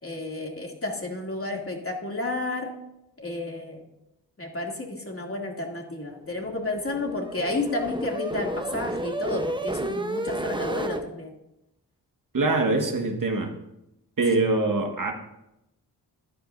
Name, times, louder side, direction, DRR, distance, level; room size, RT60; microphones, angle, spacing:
voice 1, 0.0-2.8 3.2-3.8 4.4-11.3, left 2 dB, 30° left, 0 dB, 2.8 m, -31 dB
sound 1, 6.3-11.0, right 1 dB, 10° right, 1.0 m, -31 dB
voice 2, 12.3-13.5 14.2-15.1, right 3 dB, 50° right, 3 dB, 1.8 m, -23 dB
14.0 x 10.0 x 2.7 m, 0.85 s
cardioid pair, 45°, 41 cm